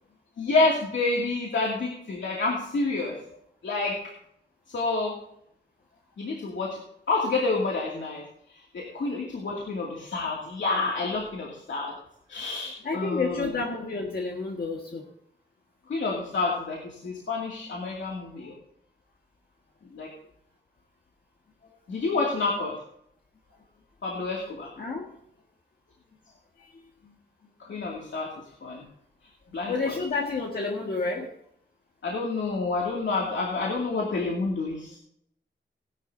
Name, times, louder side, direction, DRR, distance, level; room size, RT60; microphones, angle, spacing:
voice 1, 0.4-3.1 3.6-4.0 4.7-5.2 6.2-6.8 7.1-8.2 8.7-11.9 12.3-13.5 15.9-18.5 19.9-20.1 21.9-22.8 24.0-24.7 27.6-28.3 28.6-28.8 29.5-29.9 32.0-35.0, left 3 dB, 80° left, -3 dB, 2.5 m, -28 dB
voice 2, 12.8-15.1 18.4-18.5 21.9-22.0 23.5-23.6 24.8-25.1 26.6-27.1 29.6-31.3, left 3 dB, 55° left, -1 dB, 1.7 m, -31 dB
17.0 x 11.5 x 2.7 m, 0.71 s
wide cardioid pair, 140°, 19 cm